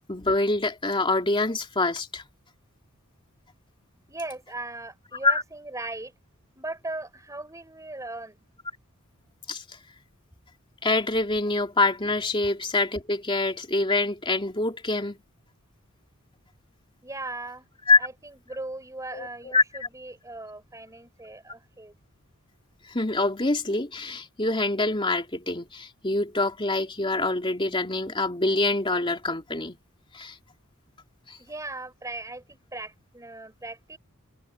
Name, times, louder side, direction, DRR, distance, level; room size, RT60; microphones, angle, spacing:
voice 1, 0.1-2.2 5.2-5.4 9.5-9.6 10.8-15.2 17.9-18.0 19.1-19.6 22.9-29.8 30.1-30.3 31.3-31.4, left 2 dB, 25° left, 3.0 m, -25 dB
voice 2, 4.1-6.1 6.6-8.4 17.0-17.7 18.0-21.9 31.4-34.0, right 2 dB, 15° right, 6.4 m, -38 dB
head